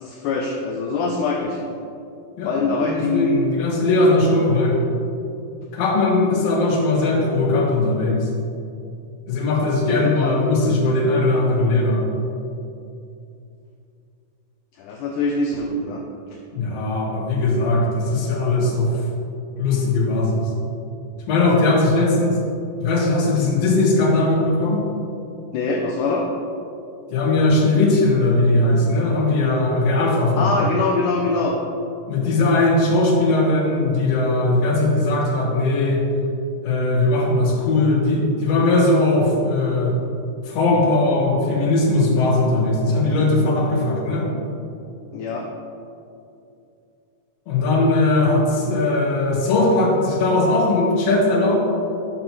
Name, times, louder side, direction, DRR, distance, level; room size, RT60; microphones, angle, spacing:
voice 1, 0.0-1.6 2.4-3.4 9.9-10.4 14.8-16.0 25.5-26.3 30.4-31.6 45.1-45.5, left 3 dB, 80° left, 0 dB, 1.9 m, -23 dB
voice 2, 2.4-4.8 5.7-8.3 9.3-12.0 16.5-18.9 19.6-20.5 21.3-22.4 22.8-24.8 27.1-30.5 32.1-36.0 36.6-39.9 40.5-44.3 47.5-51.6, left 2 dB, 60° left, -2 dB, 2.0 m, -19 dB
11.5 x 5.7 x 3.0 m, 2.6 s
omnidirectional pair, 3.9 m